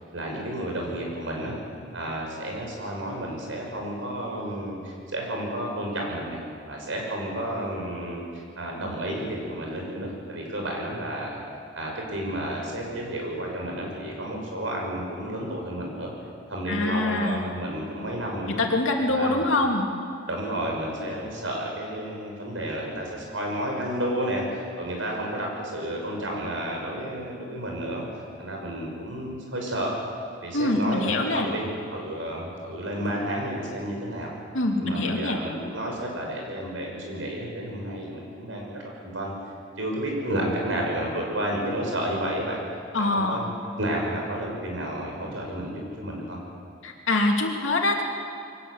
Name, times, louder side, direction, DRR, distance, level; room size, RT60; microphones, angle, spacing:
voice 1, 0.1-1.6 1.9-6.4 6.7-8.2 8.6-11.4 11.7-16.1 16.5-18.6 19.1-19.4 20.3-28.0 28.4-29.9 30.4-34.3 34.8-39.3 39.8-42.6 43.0-43.4 43.8-46.4, right 1 dB, 85° right, 0 dB, 6.2 m, -31 dB
voice 2, 16.7-17.4 18.5-19.9 30.5-31.5 34.5-35.4 42.9-43.5 46.8-48.0, left 2 dB, 90° left, 1 dB, 2.8 m, -24 dB
23.5 x 18.5 x 8.1 m, 2.4 s
head